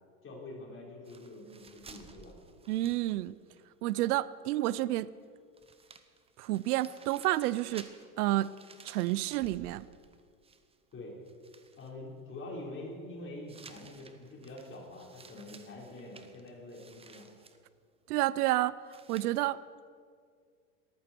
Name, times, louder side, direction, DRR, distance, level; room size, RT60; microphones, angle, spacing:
voice 1, 0.2-2.3 10.9-11.2 11.8-17.3, left 2 dB, 25° left, -2 dB, 4.5 m, -45 dB
sound 1, 1.0-3.6 3.9-4.0 5.2-5.3 5.5-10.9 11.3-11.9 13.5-17.6 18.9-19.4, right 5 dB, 15° right, 0.8 m, -55 dB
voice 2, 2.7-3.4 3.8-5.1 6.4-7.9 8.2-8.5 8.8-9.9 18.1-18.8 19.1-19.6, right 16 dB, 75° right, 19 dB, 0.6 m, -29 dB
18.0 x 14.0 x 4.5 m, 2.1 s
supercardioid pair, 120°, 46 cm